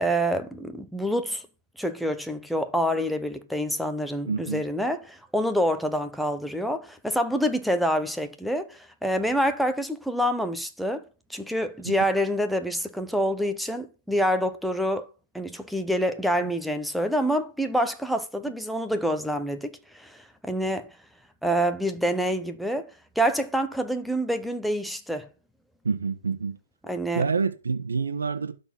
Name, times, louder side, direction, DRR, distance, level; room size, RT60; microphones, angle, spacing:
voice 1, 0.0-1.4 1.8-11.0 11.3-15.1 15.3-20.9 21.4-25.3 26.9-27.3, equal, ahead, 0.7 m, -27 dB
voice 2, 4.3-4.6 11.8-11.9 25.8-26.6 27.1-28.5, right 5 dB, 90° right, 1.3 m, -27 dB
12.0 x 4.3 x 5.8 m
hypercardioid pair, 160°, 0 cm